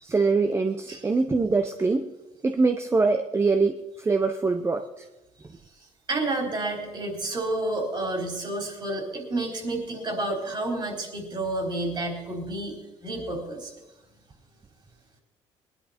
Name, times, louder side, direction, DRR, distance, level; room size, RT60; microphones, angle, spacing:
voice 1, 0.0-2.1 2.4-5.1, right 3 dB, 20° right, 7 dB, 0.8 m, -24 dB
voice 2, 6.1-13.7, right 2 dB, 40° right, 2 dB, 4.2 m, -30 dB
19.5 x 11.0 x 4.4 m, 1.0 s
cardioid pair, 90°, 12 cm